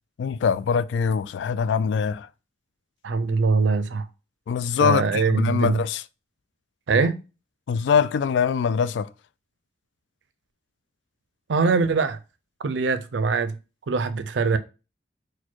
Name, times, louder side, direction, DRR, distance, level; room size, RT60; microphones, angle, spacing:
voice 1, 0.2-2.3 4.5-6.0 7.7-9.1, left 6 dB, 80° left, 0.3 m, -23 dB
voice 2, 3.0-4.1 4.8-5.8 6.9-7.2 11.5-12.2 12.6-13.6 13.9-14.6, right 4 dB, 85° right, 0.5 m, -22 dB
4.3 x 2.2 x 4.4 m
head